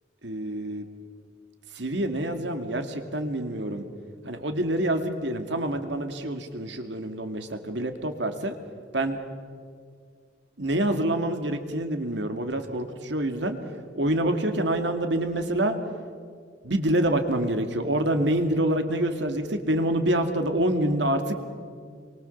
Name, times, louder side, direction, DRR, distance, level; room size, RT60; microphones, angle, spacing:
voice 1, 0.2-0.8 1.7-3.9 4.2-8.5 8.9-9.2 10.6-13.6 13.9-15.8 16.6-21.4, right 1 dB, 65° right, 7 dB, 2.3 m, -26 dB
28.5 x 23.5 x 7.1 m, 2.1 s
head